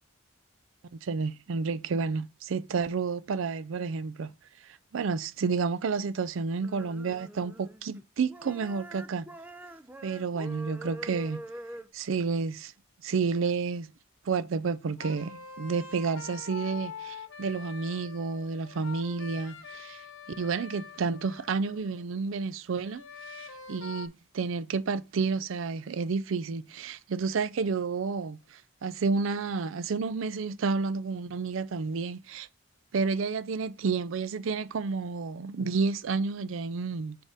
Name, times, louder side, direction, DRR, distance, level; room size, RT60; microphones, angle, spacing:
voice 1, 0.9-4.3 4.9-9.3 10.0-11.4 11.9-12.7 13.0-13.9 14.3-20.0 20.4-32.5 32.9-37.2, right 4 dB, 70° right, 0.4 m, -30 dB
sound 1, 6.6-8.0 8.3-11.9, right 1 dB, 10° right, 0.4 m, -44 dB
sound 2, 14.9-22.1 22.8-24.1, left 5 dB, 65° left, 1.0 m, -44 dB
4.7 x 4.3 x 4.8 m
head